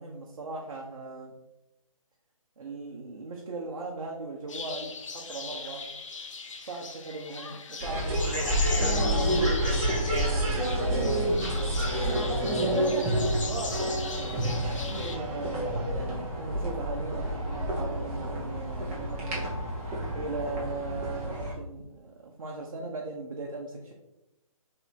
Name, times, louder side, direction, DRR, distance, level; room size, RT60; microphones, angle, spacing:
voice 1, 0.0-1.3 2.6-5.9 6.6-11.7 12.4-19.5 20.1-23.9, right 3 dB, 65° right, -1 dB, 0.8 m, -38 dB
sound 1, 4.5-15.2, left 4 dB, 60° left, 0.6 m, -39 dB
sound 2, 7.8-21.5, right 1 dB, 15° right, 0.7 m, -29 dB
3.3 x 2.6 x 4.4 m, 0.93 s
figure-of-eight pair, 150°, 18 cm